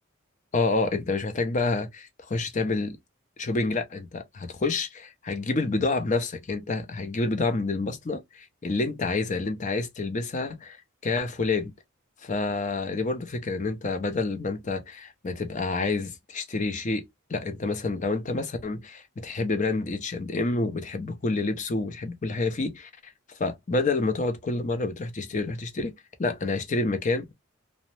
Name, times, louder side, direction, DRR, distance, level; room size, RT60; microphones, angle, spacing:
voice 1, 0.5-3.0 3.4-10.8 11.0-11.7 12.2-25.9 26.2-27.3, left 3 dB, 35° left, 0.5 m, -28 dB
2.7 x 2.0 x 3.1 m
head